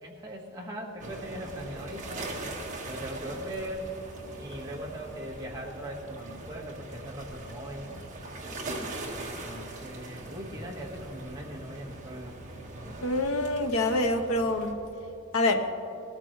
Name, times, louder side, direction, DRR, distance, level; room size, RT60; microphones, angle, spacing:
voice 1, 0.0-2.3 2.9-3.9 4.3-7.9 9.1-12.4, right 1 dB, 20° right, -2 dB, 1.6 m, -40 dB
sound 1, 1.0-14.7, right 2 dB, 35° right, 1.6 m, -41 dB
voice 2, 13.0-14.8 15.3-15.7, left 2 dB, 90° left, 6 dB, 0.9 m, -26 dB
19.5 x 13.5 x 3.2 m, 2.9 s
head